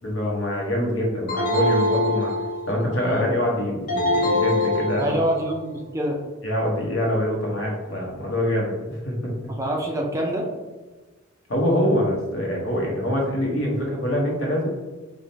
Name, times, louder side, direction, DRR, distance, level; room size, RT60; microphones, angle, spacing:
voice 1, 0.0-2.3 2.7-5.2 6.4-9.3 11.5-14.7, left 1 dB, 70° left, -2 dB, 1.0 m, -24 dB
sound 1, 1.3-2.8 3.9-5.5, left 2 dB, 45° left, 0.6 m, -23 dB
voice 2, 5.0-6.2 9.5-10.5, right 1 dB, 15° right, 0 dB, 0.4 m, -26 dB
4.9 x 2.1 x 2.7 m, 1.2 s
head